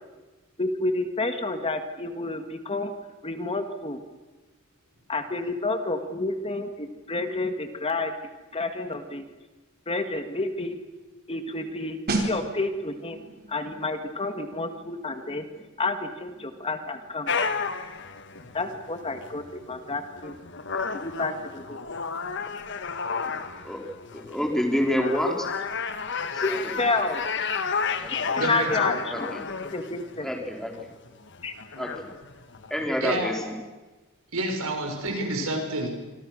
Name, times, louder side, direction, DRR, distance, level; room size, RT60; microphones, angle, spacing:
voice 1, 0.6-2.9 3.2-4.0 5.1-8.1 8.5-9.3 9.9-10.8 11.3-13.2 13.5-15.5 15.8-17.5 18.5-20.4 20.9-21.8 26.4-26.5 26.8-27.2 28.1-29.3 29.7-30.3 31.4-31.5, left 2 dB, 25° left, 7 dB, 1.8 m, -30 dB
sound 1, 12.1-22.6 22.8-23.1, right 2 dB, 50° right, 4.4 m, -38 dB
sound 2, 17.3-32.9, left 5 dB, 55° left, 1.5 m, -32 dB
voice 2, 24.1-25.5 26.3-26.7 28.0-28.3 28.6-28.8 29.1-29.4 30.2-30.7 31.8-32.1 32.7-33.5, equal, ahead, 1 dB, 4.1 m, -28 dB
voice 3, 28.4-29.0 33.0-33.4 34.3-35.9, right 1 dB, 75° right, 4 dB, 5.7 m, -29 dB
26.0 x 25.5 x 6.4 m, 1.2 s
head